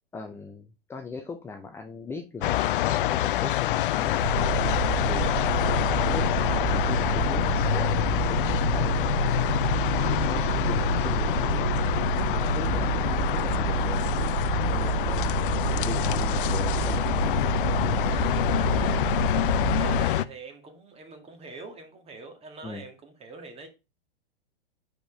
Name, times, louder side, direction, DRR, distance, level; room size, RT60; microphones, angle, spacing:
voice 1, 0.1-11.8 12.2-14.2 14.7-15.4 15.7-18.1 18.8-19.0 22.6-22.8, left 4 dB, 10° left, 0.5 m, -39 dB
sound 1, 2.4-20.2, left 14 dB, 60° left, 0.5 m, -26 dB
Huge vehicle sound, 4.2-20.1, right 11 dB, 50° right, 0.5 m, -29 dB
voice 2, 18.0-19.1 19.5-23.7, right 4 dB, 20° right, 1.7 m, -44 dB
5.1 x 5.0 x 4.8 m
hypercardioid pair, 120°, 29 cm